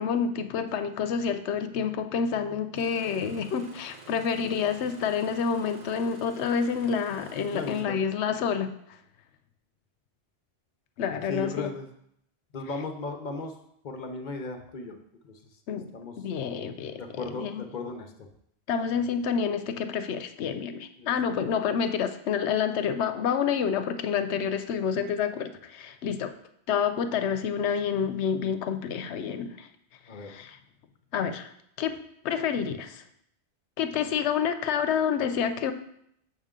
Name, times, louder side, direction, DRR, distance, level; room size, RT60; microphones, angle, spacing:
voice 1, 0.0-8.7 11.0-11.7 15.7-15.9 16.2-17.6 18.7-26.3 26.7-29.7 30.2-30.6 31.1-31.5 31.8-32.0 32.2-33.0 33.8-35.7, left 7 dB, 80° left, 10 dB, 0.9 m, -28 dB
Engine starting, 2.8-7.8, right 4 dB, 45° right, 0.7 m, -50 dB
voice 2, 7.5-8.0 11.3-11.9 12.5-13.5 13.8-15.0 15.2-15.4 15.9-16.1 17.0-18.1 21.0-21.1 21.5-21.6 30.1-30.3, left 3 dB, 50° left, 6 dB, 0.7 m, -36 dB
6.6 x 5.8 x 3.7 m, 0.73 s
omnidirectional pair, 1.1 m